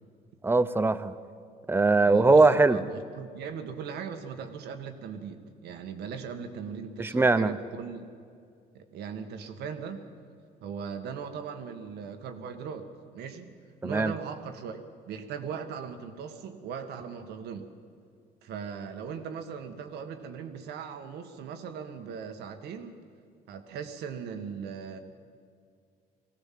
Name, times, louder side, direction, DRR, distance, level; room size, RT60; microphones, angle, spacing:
voice 1, 0.4-1.1 1.7-2.8 7.0-7.5 13.8-14.1, right 3 dB, 15° right, 14 dB, 0.8 m, -21 dB
voice 2, 2.1-8.0 8.7-10.0 10.6-12.9 13.1-13.5 13.8-14.8 15.1-17.7 18.4-23.0 23.5-25.0, right 6 dB, 75° right, 6 dB, 1.8 m, -39 dB
20.5 x 17.0 x 7.7 m, 2.2 s
cardioid pair, 110°, 17 cm